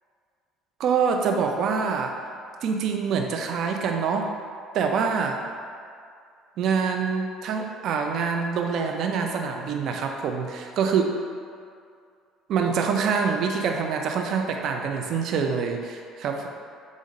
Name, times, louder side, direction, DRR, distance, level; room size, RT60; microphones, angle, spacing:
voice 1, 0.8-2.1 2.6-4.3 4.7-5.4 6.6-11.0 12.5-16.5, right 6 dB, 60° right, 3 dB, 0.5 m, -25 dB
5.1 x 2.5 x 4.0 m, 2.3 s
cardioid pair, 120°, 0 cm